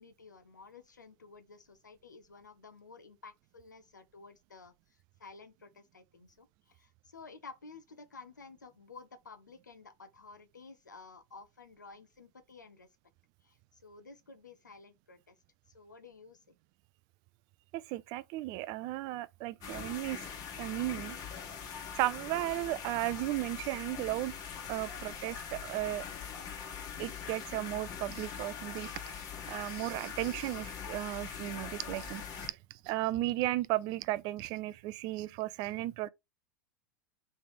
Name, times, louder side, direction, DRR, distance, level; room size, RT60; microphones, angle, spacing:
voice 1, 0.0-12.9 13.4-15.4 15.7-16.5, left 4 dB, 85° left, 0.5 m, -53 dB
voice 2, 17.7-20.3 20.6-21.2 22.0-24.3 24.7-26.0 27.0-29.1 29.5-32.6 32.8-36.1, right 17 dB, 45° right, 0.4 m, -35 dB
sound 1, 19.6-32.5, left 7 dB, 40° left, 1.3 m, -42 dB
3.3 x 3.2 x 4.5 m
figure-of-eight pair, 85°, 10 cm